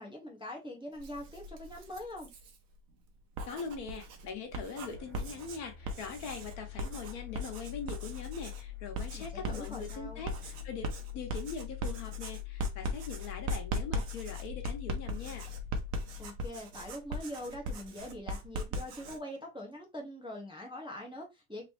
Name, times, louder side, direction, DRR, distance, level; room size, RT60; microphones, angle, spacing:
voice 1, 0.0-2.3 9.1-10.2 16.2-21.7, left 1 dB, 5° right, 1.0 m, -43 dB
Writing, 0.9-2.6 3.2-19.2, right 1 dB, 75° right, 1.2 m, -39 dB
voice 2, 3.5-10.9 11.1-15.5, left 5 dB, 85° left, 1.5 m, -42 dB
sound 1, 4.7-17.5, left 16 dB, 55° right, 1.5 m, -45 dB
4.0 x 3.0 x 3.1 m
omnidirectional pair, 1.5 m